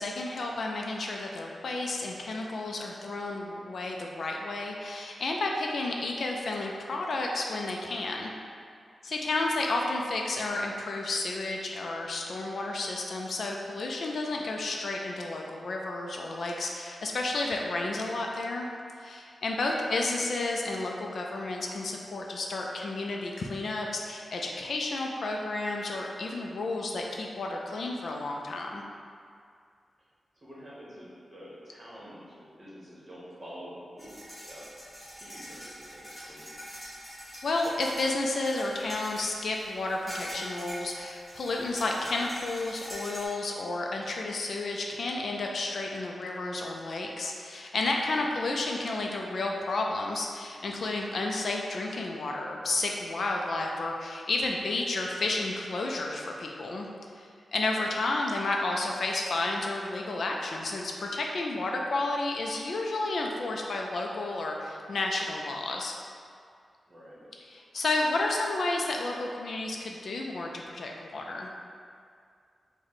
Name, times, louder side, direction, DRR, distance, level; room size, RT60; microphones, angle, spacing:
voice 1, 0.0-8.3 9.0-18.7 19.0-28.8 37.4-56.9 57.1-66.0 67.5-71.5, left 2 dB, 60° left, 0 dB, 0.3 m, -31 dB
voice 2, 30.4-34.7 35.2-36.5 48.1-48.3 57.8-57.9 66.9-67.3, equal, 25° right, -8 dB, 1.0 m, -48 dB
sound 1, 34.0-43.3, equal, 10° left, 1.5 m, -44 dB
4.6 x 2.1 x 3.9 m, 2.2 s
wide cardioid pair, 170°, 0 cm